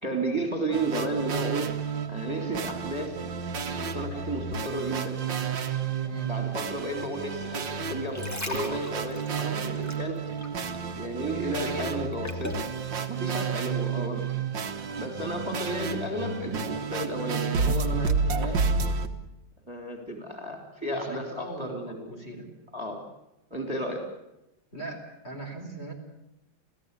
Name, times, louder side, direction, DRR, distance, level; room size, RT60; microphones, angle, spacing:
voice 1, 0.0-1.7 2.1-3.2 3.8-5.2 6.3-10.2 10.9-12.7 13.1-14.3 15.0-18.6 19.7-22.1 22.7-23.0 23.5-24.1, right 1 dB, 15° right, 3 dB, 3.5 m, -33 dB
sound 1, 0.7-19.1, right 5 dB, 70° right, 2.1 m, -31 dB
sound 2, 7.9-11.0 11.3-12.7 13.3-13.4, left 1 dB, 10° left, 2.0 m, -39 dB
voice 2, 11.4-12.0 13.3-13.6 15.1-15.3 20.9-22.5 24.7-25.9, right 2 dB, 30° left, 2 dB, 4.6 m, -40 dB
28.5 x 16.5 x 8.4 m, 0.94 s
omnidirectional pair, 2.1 m